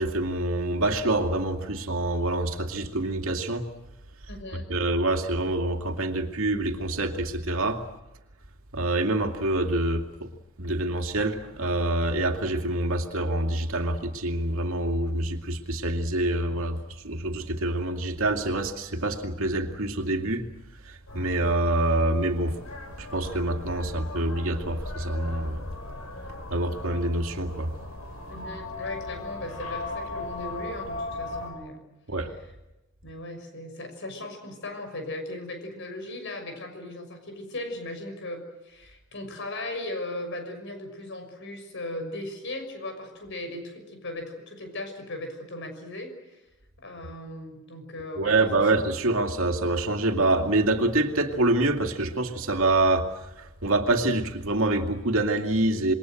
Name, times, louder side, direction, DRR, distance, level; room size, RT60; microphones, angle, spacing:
voice 1, 0.0-3.7 4.5-7.8 8.7-10.3 10.6-20.5 20.8-22.6 23.0-25.6 26.5-27.7 32.1-32.3 48.2-55.9, right 2 dB, 70° right, 4 dB, 2.5 m, -26 dB
voice 2, 4.3-4.7 28.3-31.8 33.0-46.4 46.8-48.5, left 1 dB, 60° left, 7 dB, 6.2 m, -37 dB
sound 1, 21.1-31.5, left 2 dB, 85° left, 6.9 m, -38 dB
27.5 x 22.5 x 7.9 m, 0.98 s
head